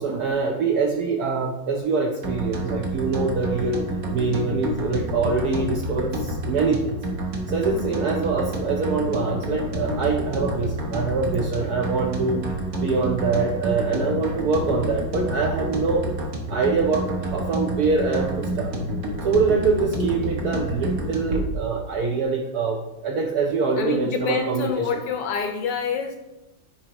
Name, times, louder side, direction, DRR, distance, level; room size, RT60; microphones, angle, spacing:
voice 1, 0.0-3.8 4.1-7.0 7.5-12.5 12.8-16.1 16.5-18.8 19.2-25.0, right 4 dB, 70° right, 1 dB, 0.9 m, -24 dB
sound 1, 2.2-21.4, right 1 dB, 50° right, 1.3 m, -29 dB
voice 2, 19.6-19.9 23.8-26.2, left 6 dB, 75° left, 5 dB, 1.0 m, -27 dB
8.8 x 4.3 x 2.9 m, 1.0 s
omnidirectional pair, 2.2 m